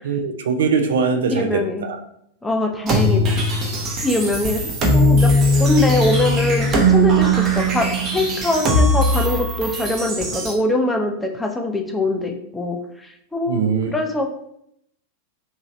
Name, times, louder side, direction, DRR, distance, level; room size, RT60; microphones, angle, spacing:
voice 1, 0.0-2.0 13.5-13.9, right 5 dB, 60° right, 7 dB, 0.3 m, -21 dB
voice 2, 1.3-1.9 2.4-3.2 4.0-5.3 5.6-13.6 13.9-14.3, left 2 dB, 10° left, 2 dB, 0.5 m, -23 dB
sound 1, 2.9-10.5, equal, 30° right, 0.7 m, -19 dB
2.9 x 2.6 x 2.6 m, 0.73 s
figure-of-eight pair, 90°, 0 cm